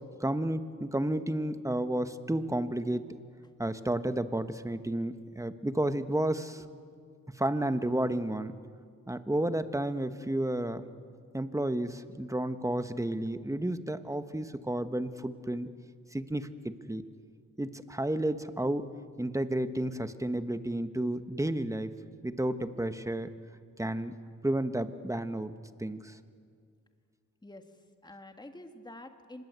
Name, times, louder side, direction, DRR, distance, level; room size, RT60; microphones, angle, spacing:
voice 1, 0.2-3.1 3.6-6.7 7.4-8.5 9.1-10.8 11.3-15.7 16.1-17.0 17.6-18.9 19.2-21.9 22.2-23.3 23.8-24.2 24.4-25.5 25.8-26.2, right 1 dB, 10° right, 10 dB, 1.4 m, -31 dB
voice 2, 27.4-29.4, left 1 dB, 15° left, 6 dB, 1.9 m, -48 dB
25.5 x 20.5 x 8.3 m, 2.2 s
cardioid pair, 55°, 33 cm